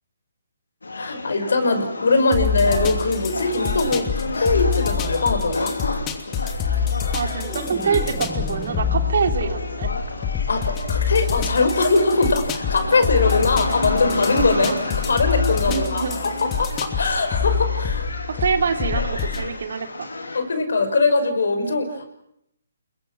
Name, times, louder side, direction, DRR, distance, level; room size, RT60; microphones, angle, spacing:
sound 1, 0.8-20.4, left 2 dB, 85° left, 4.9 m, -31 dB
voice 1, 0.9-5.7 10.5-14.7 15.0-18.1 20.3-22.1, left 3 dB, 70° left, 8 dB, 5.8 m, -21 dB
sound 2, 2.3-19.5, left 7 dB, 20° left, 2.8 m, -26 dB
sound 3, 6.7-9.8 10.2-10.6, right 2 dB, 5° right, 1.4 m, -38 dB
voice 2, 7.1-9.9 14.5-14.8 15.7-16.2 18.3-20.1, right 5 dB, 65° right, 5 dB, 3.3 m, -25 dB
29.5 x 22.0 x 6.2 m, 0.75 s
figure-of-eight pair, 145°, 0 cm